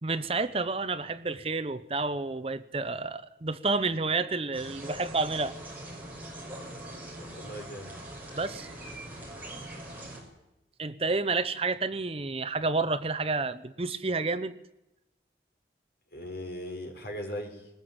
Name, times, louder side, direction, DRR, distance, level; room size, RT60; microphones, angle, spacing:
voice 1, 0.0-5.5 8.4-8.7 10.8-14.5, right 3 dB, 35° right, 12 dB, 0.8 m, -30 dB
sound 1, 4.5-10.2, right 1 dB, 10° right, 5.9 m, -42 dB
voice 2, 7.2-8.0 16.1-17.7, equal, 65° left, 2 dB, 4.8 m, -39 dB
20.5 x 20.0 x 8.8 m, 0.93 s
head